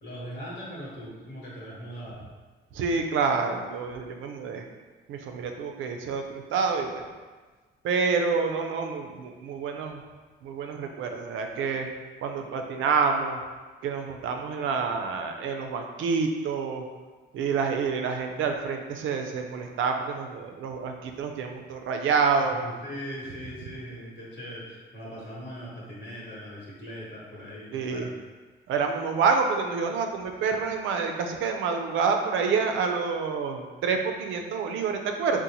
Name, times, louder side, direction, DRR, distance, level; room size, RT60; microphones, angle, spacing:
voice 1, 0.0-2.2 22.5-28.2, equal, 65° left, -5 dB, 1.2 m, -40 dB
voice 2, 2.7-4.6 5.1-7.0 7.8-10.0 10.4-11.9 12.2-13.4 13.8-16.8 17.3-22.6 27.7-28.1 28.7-35.4, right 5 dB, 80° right, 4 dB, 0.4 m, -28 dB
4.0 x 2.1 x 2.9 m, 1.3 s
cardioid pair, 90°, 20 cm